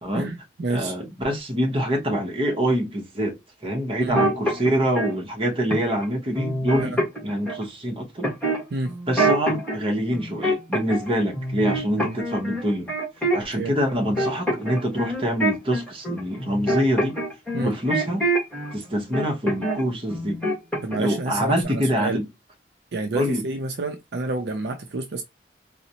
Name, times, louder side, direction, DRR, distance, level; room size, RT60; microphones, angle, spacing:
voice 1, 0.1-0.9 4.0-4.2 6.8-6.9 8.7-8.9 12.0-12.2 13.6-13.7 17.5-17.7 20.8-22.2 22.9-25.2, right 2 dB, 60° right, 0.5 m, -29 dB
voice 2, 0.7-3.4 3.6-7.0 7.2-8.3 9.1-12.9 13.3-17.2 17.6-18.2 18.7-20.4 21.0-22.2 23.1-23.4, equal, 30° right, 0.8 m, -25 dB
sound 1, 4.1-5.1 5.7-6.0 6.3-7.6 8.2-9.8 10.1-11.1 11.3-13.6 13.9-18.7 19.1-19.8 20.1-21.1 21.4-21.6, right 1 dB, 10° left, 1.4 m, -25 dB
4.0 x 2.0 x 2.8 m
head